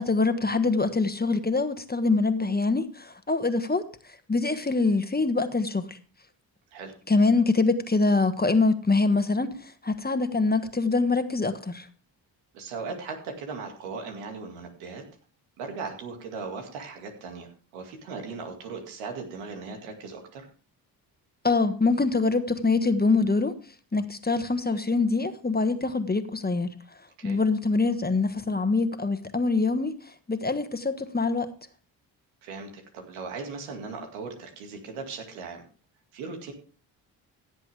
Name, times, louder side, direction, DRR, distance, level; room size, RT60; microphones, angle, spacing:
voice 1, 0.0-3.9 4.3-6.0 7.1-11.9 21.4-23.5 23.9-26.7 27.2-29.9 30.3-31.5, left 3 dB, 20° left, 10 dB, 1.5 m, -24 dB
voice 2, 12.5-15.0 15.6-20.5 27.2-27.4 32.4-35.7 36.1-36.5, right 4 dB, 90° right, 3 dB, 2.3 m, -38 dB
16.0 x 7.9 x 3.5 m, 0.39 s
hypercardioid pair, 45°, 47 cm